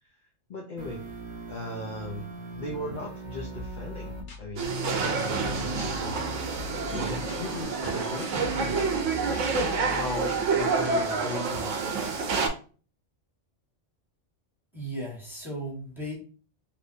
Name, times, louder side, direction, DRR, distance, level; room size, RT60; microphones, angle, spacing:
voice 1, 0.5-1.0 1.5-6.2 6.5-8.8 9.2-12.1, left 2 dB, 50° left, 0 dB, 0.6 m, -38 dB
sound 1, 0.8-4.2 4.6-7.6, right 1 dB, 30° right, 0.6 m, -40 dB
sound 2, 3.2-11.3, left 1 dB, 75° left, 1.1 m, -42 dB
sound 3, 4.6-12.5, right 4 dB, 85° right, 1.0 m, -28 dB
voice 2, 14.7-16.1, right 1 dB, ahead, -5 dB, 1.2 m, -36 dB
3.4 x 2.7 x 2.6 m, 0.38 s
omnidirectional pair, 1.3 m